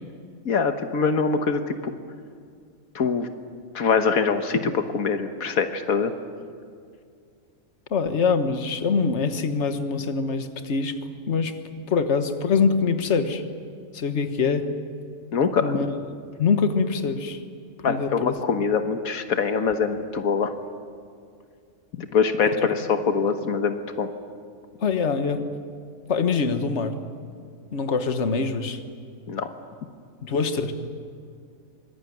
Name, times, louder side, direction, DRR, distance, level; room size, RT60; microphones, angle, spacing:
voice 1, 0.4-1.9 2.9-3.3 3.7-6.1 15.3-15.8 17.8-20.5 22.0-24.1 29.3-29.5, left 5 dB, 90° left, 8 dB, 1.7 m, -24 dB
voice 2, 7.9-11.0 11.3-11.5 11.9-13.4 13.9-14.7 15.6-15.9 16.4-17.4 17.9-18.4 22.5-22.7 24.8-25.4 26.1-27.0 27.7-28.8 30.2-30.7, left 5 dB, 55° left, 8 dB, 1.7 m, -24 dB
24.5 x 21.0 x 9.4 m, 2.2 s
omnidirectional pair, 1.4 m